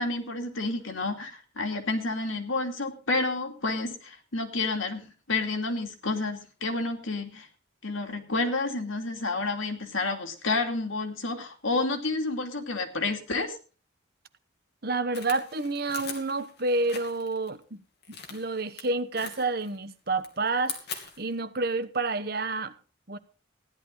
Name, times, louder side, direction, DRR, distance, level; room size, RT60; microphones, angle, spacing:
voice 1, 0.0-7.5 7.8-13.5, left 3 dB, 90° left, 2.6 m, -30 dB
voice 2, 14.8-17.8 18.3-20.8 21.2-22.7 23.1-23.2, right 3 dB, 50° right, 1.1 m, -29 dB
sound 1, 15.1-17.5 18.0-18.8 19.2-19.8 20.1-21.3, left 6 dB, 55° left, 2.8 m, -41 dB
16.0 x 11.0 x 4.0 m
head